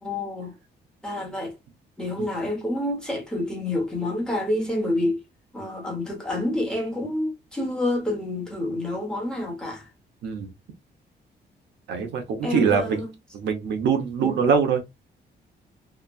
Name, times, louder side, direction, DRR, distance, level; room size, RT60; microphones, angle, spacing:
voice 1, 0.0-0.5 1.0-1.5 2.0-5.2 5.5-9.9 12.4-13.1 14.2-14.4, left 1 dB, 5° left, 1.0 m, -28 dB
voice 2, 11.9-13.0 13.3-14.8, right 6 dB, 80° right, 0.9 m, -23 dB
2.9 x 2.3 x 2.3 m
cardioid pair, 155°, 18 cm